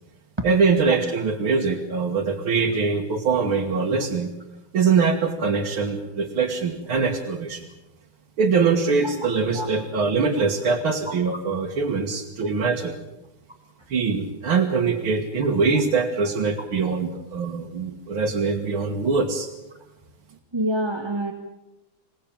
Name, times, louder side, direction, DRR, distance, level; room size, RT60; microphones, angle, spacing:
voice 1, 0.4-4.3 4.7-7.6 8.4-13.0 13.9-19.5, right 5 dB, 70° right, 0 dB, 2.7 m, -23 dB
voice 2, 20.5-21.3, right 1 dB, 15° right, 2 dB, 1.6 m, -25 dB
27.5 x 18.0 x 8.8 m, 1.0 s
omnidirectional pair, 2.4 m